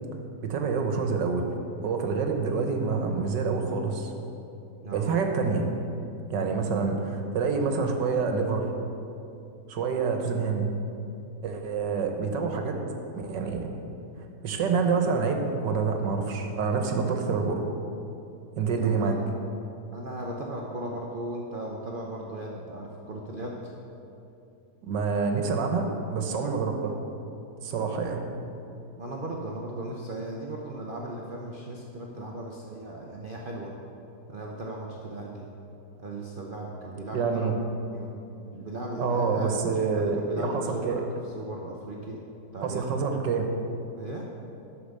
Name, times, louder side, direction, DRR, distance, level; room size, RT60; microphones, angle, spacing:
voice 1, 0.4-1.5 1.8-4.1 4.9-5.7 6.3-8.7 9.7-10.7 11.4-12.8 13.1-13.7 14.4-17.6 18.6-19.2 24.8-27.0 27.6-28.3 37.1-37.5 39.0-41.0 42.6-43.5, right 5 dB, 85° right, 4 dB, 1.7 m, -27 dB
voice 2, 4.8-5.2 18.6-19.1 19.9-23.7 25.8-26.0 29.0-33.7 34.3-35.5 36.0-37.5 37.8-38.1 38.5-42.2 42.5-42.9 44.0-44.3, right 1 dB, 40° right, -2 dB, 0.8 m, -37 dB
11.5 x 5.8 x 6.7 m, 2.8 s
omnidirectional pair, 1.9 m